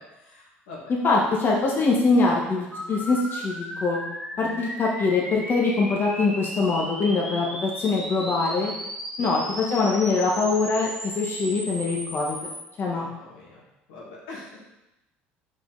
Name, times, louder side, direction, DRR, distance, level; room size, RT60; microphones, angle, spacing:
voice 1, 0.0-0.9 4.3-4.6 9.2-9.3 12.8-13.6 13.9-14.6, left 2 dB, 85° left, -4 dB, 2.1 m, -44 dB
voice 2, 1.0-4.0 4.4-8.7 9.2-12.5 12.8-13.1, left 3 dB, 40° left, -2 dB, 1.3 m, -23 dB
sound 1, 2.7-12.6, equal, ahead, 1.3 m, -35 dB
5.6 x 5.5 x 4.0 m, 0.95 s
supercardioid pair, 85°, 5 cm